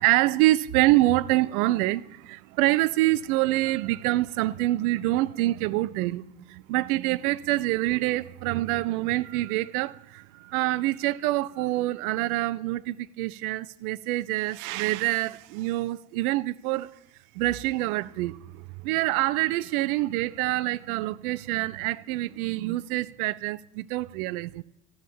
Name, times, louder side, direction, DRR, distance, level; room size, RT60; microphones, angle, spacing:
voice 1, 0.0-16.9 17.3-24.6, right 17 dB, 65° right, 0.6 m, -26 dB
13.5 x 5.5 x 6.9 m
hypercardioid pair, 75°, 49 cm